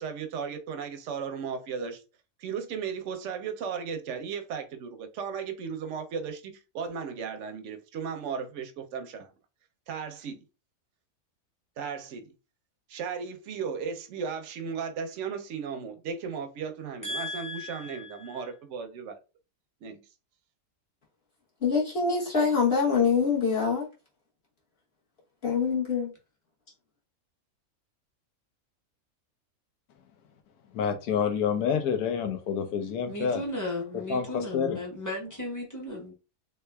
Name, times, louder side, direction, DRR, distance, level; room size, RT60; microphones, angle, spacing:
voice 1, 0.0-2.0 2.4-9.3 9.9-10.4 11.8-12.2 12.9-19.2 19.8-20.0, right 6 dB, 65° right, 0.8 m, -35 dB
voice 2, 17.0-18.5 33.1-36.2, left 2 dB, 15° left, 0.8 m, -36 dB
voice 3, 21.6-23.9 25.4-26.1, left 5 dB, 45° left, 1.1 m, -24 dB
voice 4, 30.7-33.4 34.1-34.8, left 7 dB, 85° left, 1.2 m, -28 dB
3.5 x 3.2 x 2.2 m
omnidirectional pair, 1.6 m